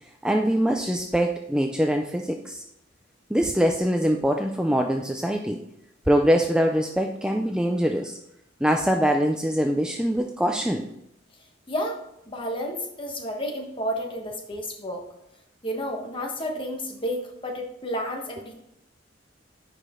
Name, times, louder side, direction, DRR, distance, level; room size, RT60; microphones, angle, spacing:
voice 1, 0.2-2.6 3.3-5.6 6.1-8.1 8.6-10.9, equal, 5° right, 3 dB, 0.4 m, -23 dB
voice 2, 11.7-12.0 12.3-15.0 15.6-18.5, equal, 25° left, 2 dB, 1.3 m, -31 dB
9.9 x 5.1 x 3.7 m, 0.81 s
head